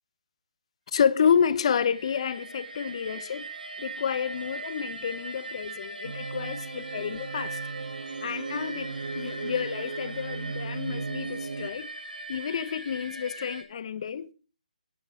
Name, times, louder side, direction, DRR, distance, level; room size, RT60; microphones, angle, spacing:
voice 1, 0.9-7.6 8.2-11.9 12.3-14.3, left 7 dB, 45° left, 0.7 m, -29 dB
sound 1, 1.4-13.6, right 2 dB, 85° right, 3.2 m, -41 dB
sound 2, 6.0-11.7, right 4 dB, 70° right, 0.9 m, -36 dB
10.5 x 10.5 x 4.8 m
figure-of-eight pair, 150°, 4 cm